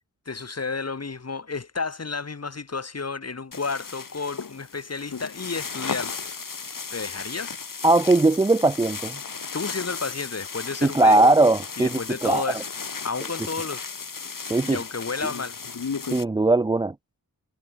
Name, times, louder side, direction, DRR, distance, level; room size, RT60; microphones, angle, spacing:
voice 1, 0.3-7.6 9.5-11.2 11.8-12.7 13.0-13.9 14.7-15.6, left 4 dB, 40° left, 1.7 m, -32 dB
sound 1, 3.5-16.2, left 5 dB, 60° left, 2.2 m, -35 dB
voice 2, 7.8-9.2 10.8-12.4 14.5-14.8 16.1-16.9, right 2 dB, 15° right, 0.4 m, -19 dB
wide cardioid pair, 105°, 37 cm